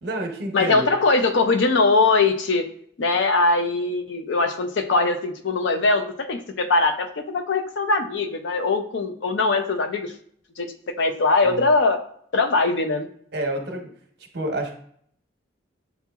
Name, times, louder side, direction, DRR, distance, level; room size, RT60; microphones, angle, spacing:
voice 1, 0.0-0.9 11.4-11.6 13.3-13.9 14.3-14.7, right 1 dB, 60° right, 3 dB, 0.8 m, -28 dB
voice 2, 0.5-2.7 3.0-10.1 10.6-10.7 11.0-12.0 12.3-13.1, left 3 dB, 75° left, 6 dB, 0.5 m, -21 dB
6.9 x 2.8 x 2.3 m, 0.63 s
head